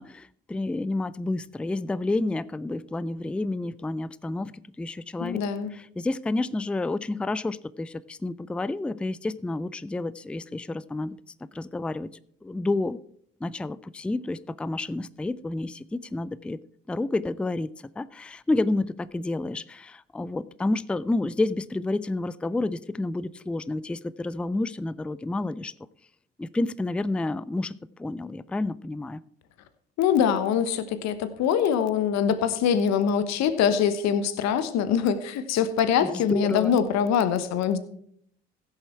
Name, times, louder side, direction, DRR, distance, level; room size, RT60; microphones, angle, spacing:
voice 1, 0.0-4.5 4.8-5.4 5.7-11.2 11.5-12.1 12.4-13.0 13.4-16.6 16.9-17.7 18.0-25.7 26.4-27.7 28.0-29.2 36.0-36.8, left 2 dB, 5° left, 0.3 m, -29 dB
voice 2, 5.2-5.7 30.0-37.8, left 8 dB, 60° left, 1.1 m, -23 dB
15.5 x 7.0 x 4.5 m
hypercardioid pair, 60°, 30 cm